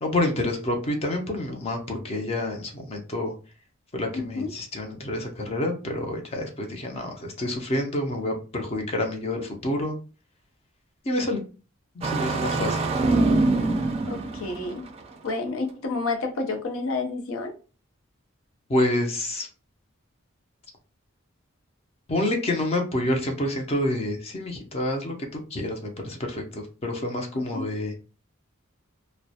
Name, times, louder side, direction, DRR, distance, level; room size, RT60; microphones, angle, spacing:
voice 1, 0.0-3.3 3.9-9.9 11.0-11.4 12.0-12.8 18.7-19.5 22.1-27.9, left 1 dB, 30° left, 0.5 m, -28 dB
voice 2, 4.1-4.5 14.1-14.8 15.2-17.5 27.3-27.7, left 3 dB, 80° left, 0.6 m, -30 dB
Engine starting, 12.0-15.0, right 2 dB, 30° right, 0.3 m, -24 dB
2.3 x 2.1 x 2.7 m
head